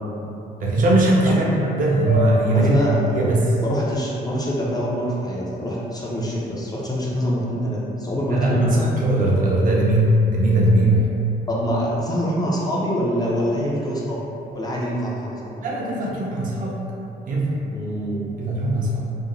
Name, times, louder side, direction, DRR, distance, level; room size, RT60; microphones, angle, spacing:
voice 1, 0.0-0.4 1.3-1.4 2.5-3.0 3.6-8.8 11.5-14.2 14.5-15.6 17.7-18.3, equal, 25° left, -5 dB, 0.4 m, -25 dB
voice 2, 0.6-2.8 3.1-3.5 8.3-11.1 15.6-16.8 17.3-17.6 18.4-19.1, right 1 dB, 50° right, -3 dB, 0.5 m, -19 dB
sound 1, 2.1-6.3, right 3 dB, 65° left, 0.6 m, -33 dB
2.5 x 2.0 x 2.9 m, 2.8 s
cardioid pair, 120°, 17 cm